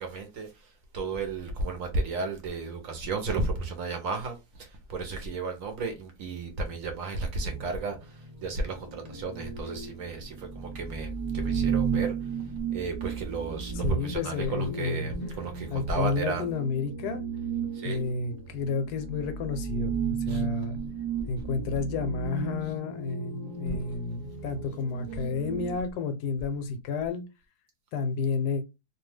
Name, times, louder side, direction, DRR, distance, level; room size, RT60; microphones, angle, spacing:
voice 1, 0.0-16.5 17.7-18.1 20.3-20.4, right 3 dB, 65° right, 0.9 m, -33 dB
sound 1, 7.4-25.7, right 6 dB, 20° right, 0.6 m, -34 dB
voice 2, 13.8-15.1 15.7-17.2 17.8-20.8 21.3-27.2 27.9-28.6, left 4 dB, 75° left, 1.1 m, -31 dB
2.7 x 2.2 x 3.2 m
omnidirectional pair, 1.7 m